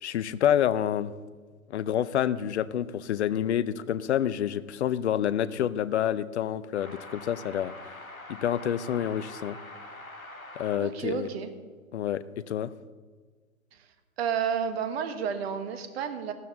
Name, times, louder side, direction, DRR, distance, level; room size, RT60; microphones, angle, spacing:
voice 1, 0.0-1.1 1.7-7.7 8.3-9.6 10.6-11.3 11.9-12.7, left 10 dB, 55° left, 16 dB, 0.7 m, -28 dB
sound 1, 6.7-10.8, left 2 dB, 85° left, 1.8 m, -44 dB
voice 2, 10.8-11.5 14.2-16.3, right 7 dB, 45° right, 9 dB, 1.5 m, -31 dB
14.0 x 12.5 x 3.8 m, 1.5 s
figure-of-eight pair, 115°, 41 cm